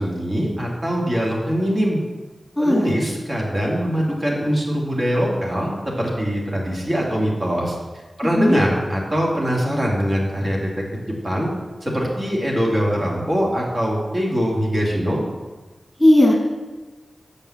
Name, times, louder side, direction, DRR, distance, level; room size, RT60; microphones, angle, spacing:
voice 1, 0.0-2.0 2.6-7.8 8.2-10.7 11.2-11.5 11.8-15.2, equal, 45° right, -3 dB, 2.6 m, -22 dB
voice 2, 2.6-2.9 8.4-8.6 16.0-16.3, left 1 dB, 10° left, -1 dB, 2.0 m, -15 dB
6.7 x 5.5 x 7.2 m, 1.2 s
cardioid pair, 45°, 0 cm